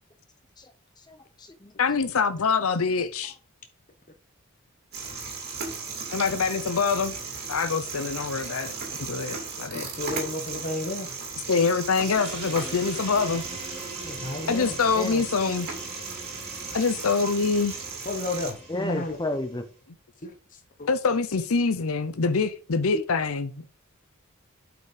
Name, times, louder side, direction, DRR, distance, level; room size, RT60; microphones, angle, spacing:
voice 1, 1.1-2.0 15.0-15.3 18.7-19.6, left 1 dB, 20° left, 0.8 m, -32 dB
voice 2, 1.8-3.3 6.1-7.1 7.5-8.7 9.0-9.8 11.5-13.4 14.5-15.7 16.7-17.8 20.9-23.6, left 5 dB, 70° left, 0.7 m, -25 dB
sound 1, 4.9-18.5, right 4 dB, 45° right, 2.8 m, -36 dB
voice 3, 9.7-11.2 14.0-14.8 18.1-19.2 20.2-20.3 20.8-20.9, left 2 dB, 35° left, 1.1 m, -32 dB
sound 2, 12.1-19.7, right 2 dB, 25° right, 3.9 m, -41 dB
8.2 x 5.0 x 5.0 m
head